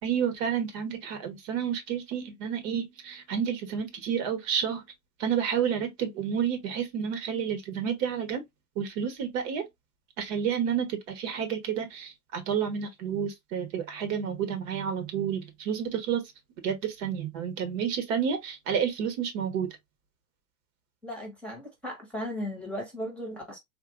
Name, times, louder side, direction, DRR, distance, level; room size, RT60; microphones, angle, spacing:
voice 1, 0.0-4.8 5.2-8.4 8.7-9.7 10.2-16.2 16.6-19.7, right 8 dB, 50° right, 1.2 m, -30 dB
voice 2, 21.0-23.6, equal, ahead, 1.1 m, -36 dB
3.8 x 2.6 x 2.5 m
hypercardioid pair, 125°, 48 cm